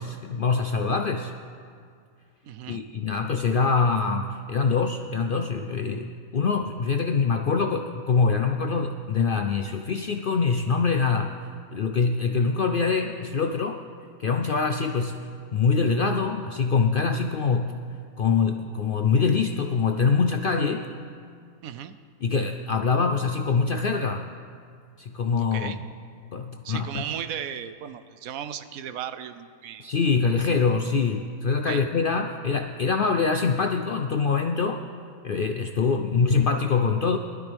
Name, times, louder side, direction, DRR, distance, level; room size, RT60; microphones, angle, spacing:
voice 1, 0.0-1.3 2.7-11.4 11.7-13.8 14.2-17.8 18.2-20.9 22.2-24.3 25.0-25.8 26.3-26.9 29.8-34.8 35.2-37.2, left 5 dB, 65° left, 5 dB, 0.5 m, -24 dB
voice 2, 2.4-2.8 21.6-22.0 25.4-25.8 26.6-29.9 31.7-31.8, right 9 dB, 80° right, 11 dB, 1.1 m, -36 dB
20.5 x 12.5 x 3.4 m, 2.2 s
omnidirectional pair, 1.5 m